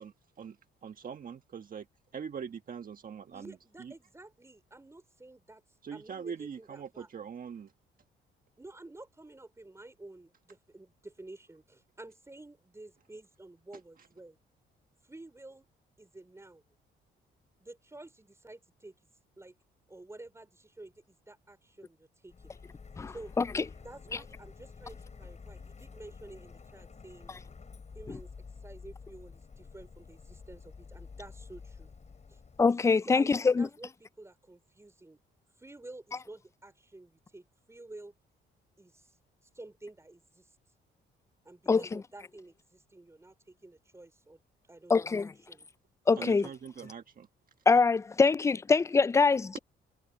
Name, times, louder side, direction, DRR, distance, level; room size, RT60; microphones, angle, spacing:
voice 1, 0.0-0.6 0.8-1.8 2.1-3.9 5.8-7.7 46.2-47.3 49.5-49.6, right 7 dB, 45° right, 1.4 m, -42 dB
voice 2, 3.3-5.6 5.9-7.1 8.6-11.6 12.0-14.4 15.0-15.7 16.0-16.6 17.6-18.9 19.4-19.6 19.9-22.6 23.1-23.3 23.8-27.3 27.9-28.3 28.6-31.9 33.1-35.2 35.6-38.1 38.8-39.1 39.5-40.5 41.4-44.4 44.7-45.1 45.5-45.7 46.2-46.5, right 2 dB, 15° right, 4.3 m, -50 dB
Printer, 22.3-32.6, left 5 dB, 35° left, 7.1 m, -50 dB
voice 3, 23.0-23.6 28.1-28.2 32.6-33.7 41.7-42.0 44.9-45.3 46.1-46.5 47.7-49.6, left 4 dB, 15° left, 0.3 m, -24 dB
cardioid pair, 90°, 20 cm